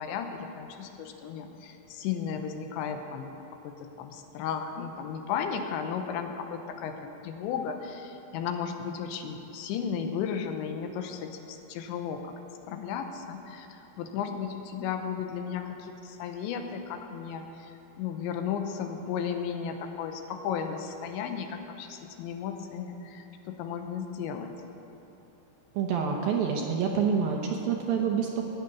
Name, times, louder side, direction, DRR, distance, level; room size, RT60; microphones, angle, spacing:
voice 1, 0.0-3.3 3.6-12.4 12.7-24.5, left 7 dB, 85° left, 6 dB, 3.2 m, -34 dB
voice 2, 25.7-28.5, right 6 dB, 70° right, 1 dB, 2.3 m, -27 dB
17.5 x 6.7 x 9.5 m, 2.9 s
omnidirectional pair, 5.2 m